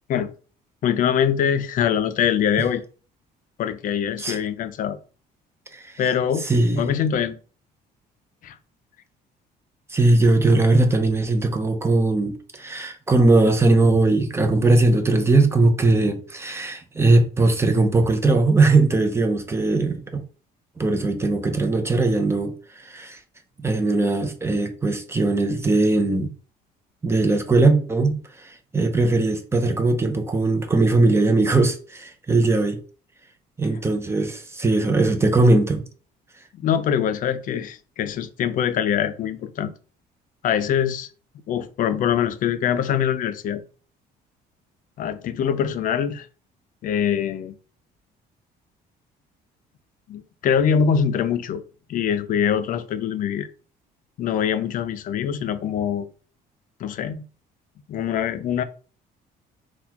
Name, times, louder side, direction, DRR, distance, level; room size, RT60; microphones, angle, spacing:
voice 1, 0.8-2.8 3.6-5.0 6.0-6.5 6.8-7.4 8.4-8.6 36.5-39.7 40.4-41.1 41.5-43.6 45.0-46.3 46.8-47.5 50.1-51.6 51.9-53.5 54.2-56.1 56.8-57.2 57.9-58.6, left 8 dB, 55° left, 0.4 m, -23 dB
voice 2, 6.4-6.9 9.9-20.2 20.8-23.2 23.6-26.3 27.0-32.8 33.6-35.8, right 2 dB, 15° right, 0.6 m, -20 dB
3.9 x 2.4 x 2.8 m
cardioid pair, 110°, 17 cm